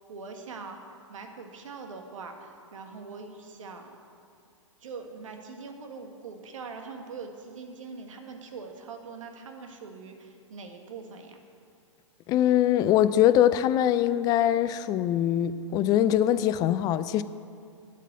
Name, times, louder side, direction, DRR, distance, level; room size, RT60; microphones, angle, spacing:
voice 1, 0.1-0.8 1.1-4.0 4.8-11.4, right 4 dB, 75° right, 1.6 m, -42 dB
voice 2, 12.3-17.2, left 11 dB, 25° left, 0.3 m, -23 dB
8.3 x 8.2 x 8.1 m
hypercardioid pair, 125°, 17 cm